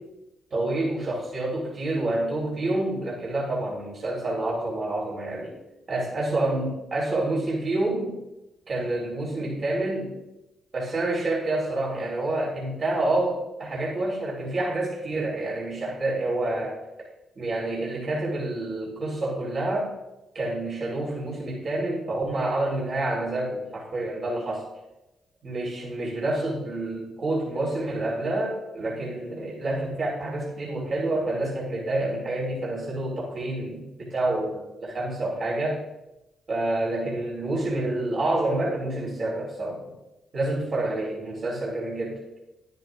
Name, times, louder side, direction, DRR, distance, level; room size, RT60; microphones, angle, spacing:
voice 1, 0.5-5.6 5.9-8.2 8.7-10.1 10.7-16.8 17.4-19.9 20.3-24.7 25.4-35.8 36.5-39.8 40.3-42.2, right 2 dB, 50° right, -5 dB, 3.5 m, -28 dB
11.0 x 10.5 x 2.5 m, 0.94 s
hypercardioid pair, 50°, 0 cm